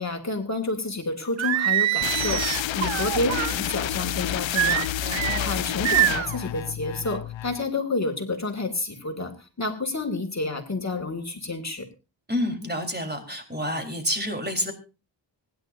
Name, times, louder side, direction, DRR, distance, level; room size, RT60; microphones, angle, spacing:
voice 1, 0.0-11.9, left 2 dB, 35° left, 5 dB, 2.4 m, -29 dB
Singing, 1.4-3.6 4.5-5.4 5.8-6.4, right 14 dB, 85° right, 0.5 m, -24 dB
sound 1, 2.0-7.6, left 12 dB, 80° left, 0.6 m, -29 dB
voice 2, 5.0-5.7 12.3-14.7, equal, 20° right, 4 dB, 3.9 m, -29 dB
24.5 x 10.5 x 2.6 m, 0.32 s
cardioid pair, 60°, 45 cm